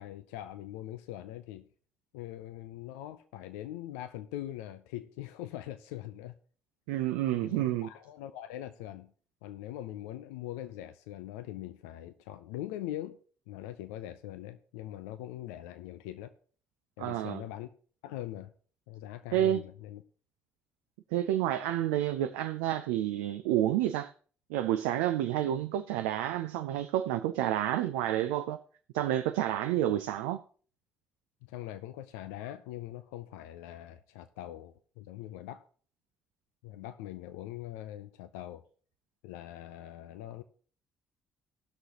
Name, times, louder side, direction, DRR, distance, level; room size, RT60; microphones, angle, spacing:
voice 1, 0.0-1.7 2.1-6.4 7.2-9.1 9.4-13.2 13.5-16.3 17.0-17.7 18.0-18.5 18.9-20.0 31.4-35.7 36.6-38.6 39.2-40.4, left 13 dB, 80° left, 0.5 m, -42 dB
voice 2, 6.9-7.9 17.0-17.4 19.3-19.6 21.1-24.1 24.5-28.6 28.9-30.4, right 12 dB, 75° right, 0.5 m, -29 dB
18.5 x 6.3 x 2.9 m
hypercardioid pair, 45°, 8 cm